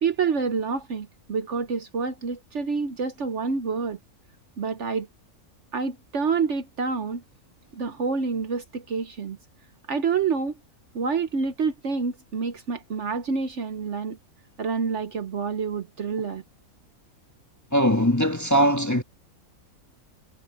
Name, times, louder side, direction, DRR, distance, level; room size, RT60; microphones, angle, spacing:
voice 1, 0.0-4.0 4.6-5.1 5.7-7.2 7.7-9.4 9.9-10.6 10.9-14.2 14.6-16.4, right 5 dB, 55° right, 1.2 m, -27 dB
voice 2, 17.7-19.0, equal, 10° left, 1.4 m, -20 dB
omnidirectional pair, 1.6 m